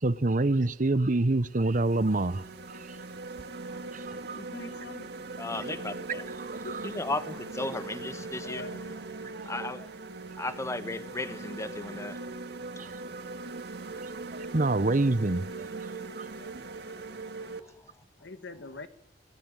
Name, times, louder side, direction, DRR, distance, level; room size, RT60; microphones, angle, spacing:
voice 1, 0.0-2.9 3.9-4.4 6.4-6.8 9.3-9.5 12.8-12.9 14.3-16.5, right 2 dB, 45° right, 0.9 m, -28 dB
sound 1, 0.7-0.9 1.4-17.6, right 3 dB, 65° right, 2.1 m, -40 dB
voice 2, 4.3-5.1 6.6-6.8 8.4-8.8 18.2-18.9, left 2 dB, 75° left, 1.9 m, -43 dB
voice 3, 5.4-6.3 6.8-8.7 9.4-9.9 10.4-12.3, left 2 dB, 15° left, 1.4 m, -35 dB
25.5 x 20.0 x 9.1 m
head